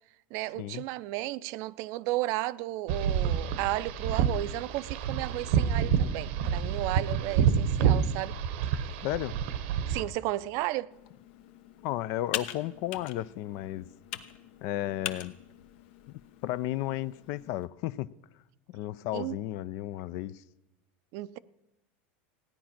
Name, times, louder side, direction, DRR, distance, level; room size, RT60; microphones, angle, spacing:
voice 1, 0.3-8.3 9.9-10.9 19.1-19.4 21.1-21.4, right 17 dB, 55° right, 0.5 m, -33 dB
sound 1, 2.9-10.0, right 7 dB, 75° right, 1.0 m, -28 dB
voice 2, 9.0-9.3 11.8-13.9 14.6-15.3 16.4-18.1 18.7-20.4, left 14 dB, 55° left, 0.4 m, -33 dB
Computer keyboard, 10.9-17.7, left 11 dB, 75° left, 1.0 m, -42 dB
16.0 x 10.0 x 5.9 m
supercardioid pair, 130°, 6 cm